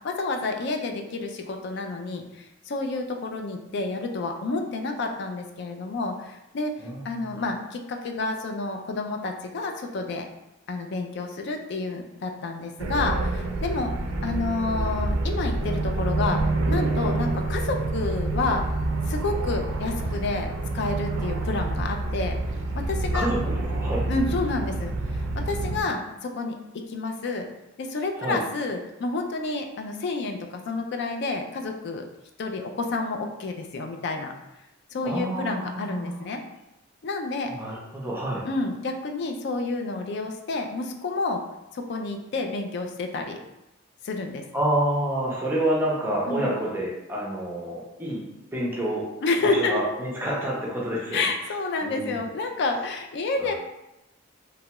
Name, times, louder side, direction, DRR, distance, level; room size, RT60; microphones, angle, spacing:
voice 1, 0.0-6.7 7.0-10.3 10.7-14.0 14.2-18.7 19.1-22.4 22.7-23.3 24.1-27.5 27.8-32.0 32.4-34.3 34.9-36.4 37.0-37.5 38.4-41.4 41.7-43.4 44.0-44.4 46.3-46.5 49.2-49.8 51.1-53.5, left 3 dB, 55° left, 4 dB, 0.3 m, -29 dB
voice 2, 6.8-7.4 23.1-24.0 28.2-28.4 35.0-36.2 37.5-38.4 44.5-48.2 48.5-49.1 49.4-51.2 51.8-52.2 53.4-53.5, right 1 dB, 10° right, -4 dB, 0.5 m, -28 dB
sound 1, 12.8-25.8, right 2 dB, 85° right, 0.4 m, -27 dB
2.9 x 2.3 x 2.9 m, 0.93 s
head